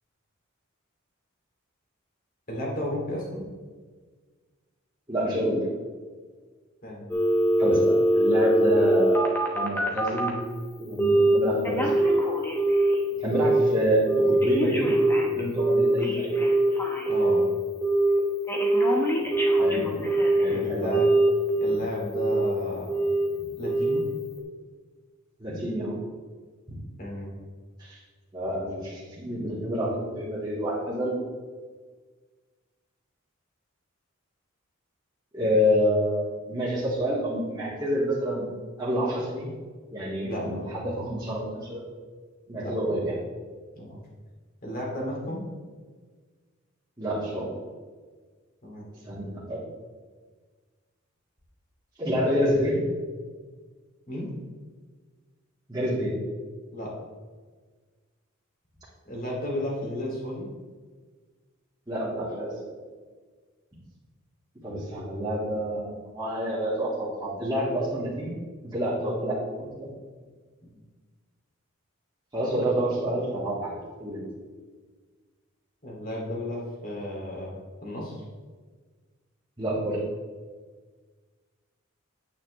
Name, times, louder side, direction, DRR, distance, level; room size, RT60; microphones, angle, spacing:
voice 1, 2.5-3.4 6.8-7.2 17.1-17.4 20.0-20.1 20.5-21.1 21.6-23.1 23.6-24.0 27.0-27.4 40.3-40.6 42.6-42.8 43.8-44.0 44.6-45.5 48.6-48.9 54.1-54.3 56.7-56.9 59.1-60.5 75.8-78.2, left 1 dB, 45° left, -3 dB, 2.5 m, -33 dB
voice 2, 5.1-5.6 7.6-10.3 10.8-12.1 13.2-14.9 15.2-16.5 19.6-19.9 20.4-21.0 25.4-26.0 27.8-28.0 28.3-31.1 35.3-38.5 38.8-39.5 39.9-41.8 42.5-43.1 47.0-47.5 49.1-49.6 52.0-52.8 55.7-56.1 61.9-62.7 64.6-68.3 68.6-69.9 72.3-74.2 79.6-80.0, equal, 20° right, -11 dB, 1.8 m, -28 dB
Telephone, 7.1-10.4 11.0-11.4 11.6-13.0 13.3-13.7 14.1-17.4 17.8-18.2 18.5-20.5 20.9-21.8 22.1-22.5 22.9-23.3 23.6-24.0 24.4-24.5, right 1 dB, 10° left, 1.0 m, -22 dB
8.8 x 8.5 x 3.2 m, 1.5 s
head